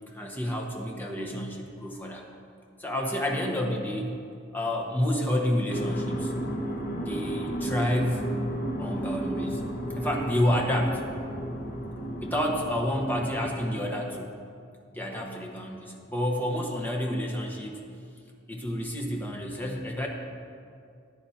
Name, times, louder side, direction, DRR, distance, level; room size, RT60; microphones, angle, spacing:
voice 1, 0.1-2.2 2.8-4.2 4.5-6.3 7.0-8.4 8.8-9.6 9.9-11.1 12.2-14.3 14.9-17.8 18.5-20.1, equal, 10° left, 0 dB, 1.1 m, -29 dB
sound 1, 5.7-13.5, right 1 dB, 50° left, 1.2 m, -33 dB
14.5 x 10.0 x 2.9 m, 2.4 s
head